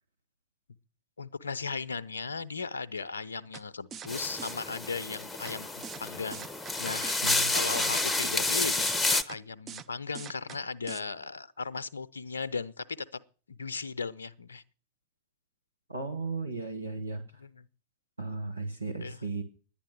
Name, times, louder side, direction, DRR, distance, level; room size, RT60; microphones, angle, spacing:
voice 1, 1.2-6.5 6.8-13.2 13.5-14.6 17.0-17.1 17.4-17.7 19.0-19.2, left 4 dB, 75° left, 0.6 m, -37 dB
sound 1, 3.5-3.6 3.9-4.1 4.4-4.5 5.5-5.6 5.8-6.0 6.3-6.7 7.0-7.5 7.7-7.9 8.2-8.4 9.3-9.4 9.7-9.9 10.1-10.6 10.9-11.0, right 7 dB, 25° right, 0.6 m, -42 dB
sound 2, 4.1-9.2, left 2 dB, 10° left, 0.8 m, -30 dB
voice 2, 7.2-7.5 15.9-17.2 18.2-19.4, right 3 dB, 80° right, 1.3 m, -35 dB
10.5 x 10.0 x 6.2 m
figure-of-eight pair, 90°, 0 cm